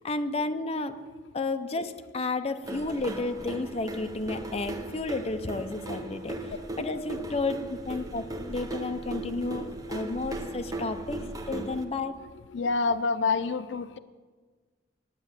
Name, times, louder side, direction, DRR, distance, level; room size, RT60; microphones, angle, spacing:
voice 1, 0.0-1.0 1.3-6.4 6.8-11.2 11.5-12.2, left 3 dB, 35° left, 8 dB, 0.7 m, -32 dB
sound 1, 2.6-11.8, right 1 dB, 20° right, 0.9 m, -37 dB
voice 2, 12.5-14.0, left 4 dB, 80° left, 13 dB, 0.5 m, -27 dB
9.8 x 8.8 x 8.1 m, 1.4 s
head